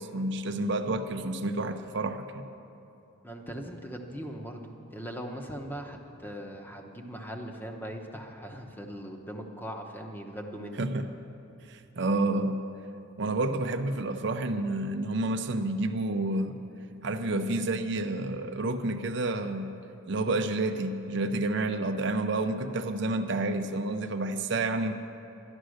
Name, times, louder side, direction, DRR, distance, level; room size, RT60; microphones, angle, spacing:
voice 1, 0.0-2.4 10.8-11.0 11.7-12.6 13.2-16.6 17.0-19.7 20.1-24.9, right 2 dB, 55° right, 7 dB, 0.6 m, -29 dB
voice 2, 3.2-10.9, equal, 10° left, 2 dB, 0.9 m, -40 dB
11.5 x 11.5 x 6.4 m, 2.8 s
head